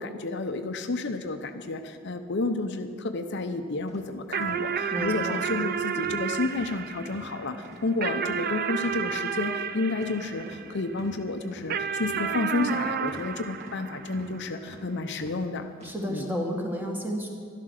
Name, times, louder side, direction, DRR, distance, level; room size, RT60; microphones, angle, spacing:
voice 1, 0.0-15.7 16.1-16.3, left 3 dB, 60° left, 7 dB, 0.7 m, -31 dB
sound 1, 3.9-4.0 4.4-4.6 5.0-5.1 5.5-5.7 6.0-6.2 6.5-6.7 7.1-7.3 7.6-7.9 8.2-8.4 8.8-9.0 9.4-9.5 10.0-10.2 10.5-10.6 11.0-11.1 11.5-11.7 12.0-12.2 12.6-12.7 13.1-13.2 13.6-13.8 14.1-14.3 14.7-14.8 15.2-15.4 15.7-15.9, equal, 35° right, 2.2 m, -46 dB
sound 2, 4.3-11.0 11.7-14.5, right 7 dB, 50° right, 0.6 m, -31 dB
voice 2, 4.9-5.5 15.8-17.3, equal, 10° right, 0 dB, 1.9 m, -31 dB
12.5 x 11.5 x 6.5 m, 2.2 s
head